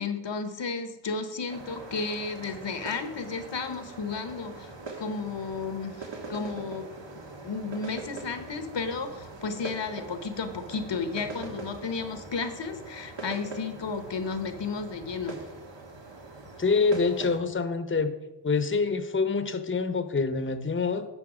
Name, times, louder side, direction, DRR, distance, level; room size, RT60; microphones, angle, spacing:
voice 1, 0.0-4.7 5.0-6.9 7.4-15.5, left 4 dB, 85° left, 9 dB, 1.0 m, -33 dB
sound 1, 1.5-17.4, right 3 dB, 80° right, 1.4 m, -42 dB
voice 2, 16.6-18.1 18.4-21.1, left 4 dB, 30° left, 10 dB, 0.7 m, -26 dB
9.4 x 5.9 x 4.9 m, 1.0 s
wide cardioid pair, 70°, 43 cm